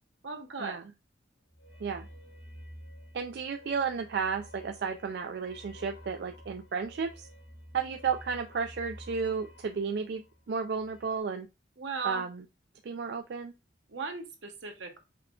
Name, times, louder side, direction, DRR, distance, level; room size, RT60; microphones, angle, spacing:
voice 1, 0.2-0.8 11.8-12.3 13.9-15.0, right 4 dB, 80° right, 4 dB, 1.0 m, -37 dB
sound 1, 1.5-11.2, equal, 70° left, 2.0 m, -50 dB
voice 2, 3.1-7.3 7.7-11.5 12.0-12.3 12.8-13.5, right 5 dB, 60° right, 5 dB, 0.3 m, -33 dB
5.6 x 2.2 x 3.7 m, 0.25 s
head